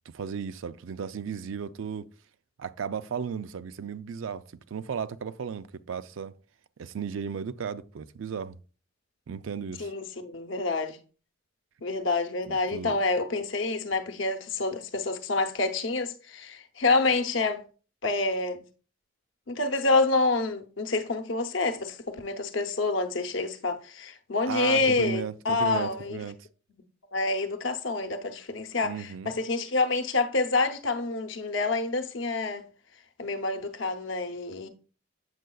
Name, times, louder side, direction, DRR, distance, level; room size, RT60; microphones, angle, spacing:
voice 1, 0.1-2.1 2.6-6.4 6.8-8.6 9.3-9.9 12.5-13.0 24.5-26.4 28.8-29.3, right 6 dB, 75° right, 0.4 m, -35 dB
voice 2, 9.8-11.0 11.8-17.6 18.0-18.6 19.5-26.2 27.1-32.6 33.2-34.7, left 3 dB, 65° left, 0.8 m, -27 dB
7.8 x 6.3 x 2.3 m
head